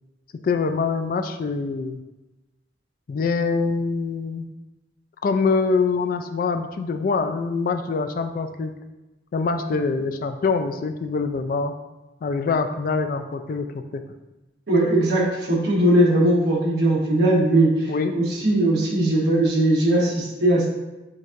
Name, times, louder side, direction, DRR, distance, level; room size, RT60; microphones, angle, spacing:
voice 1, 0.4-2.0 3.1-4.5 5.2-8.7 9.3-11.7 12.2-14.0 17.9-18.2, left 4 dB, 50° left, 8 dB, 0.3 m, -24 dB
voice 2, 14.7-20.7, right 1 dB, 60° right, -5 dB, 1.3 m, -19 dB
6.2 x 2.7 x 2.5 m, 1.1 s
head